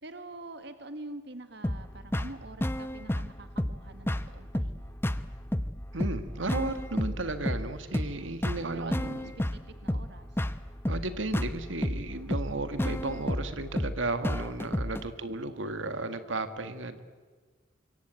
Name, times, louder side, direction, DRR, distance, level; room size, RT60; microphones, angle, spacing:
voice 1, 0.0-5.0 8.7-10.4, right 2 dB, 60° right, 9 dB, 1.7 m, -45 dB
sound 1, 1.6-15.0, left 1 dB, 10° left, 0.9 m, -32 dB
voice 2, 5.9-9.3 10.9-17.0, right 2 dB, 80° right, 10 dB, 1.8 m, -34 dB
25.5 x 23.0 x 9.2 m, 1.4 s
head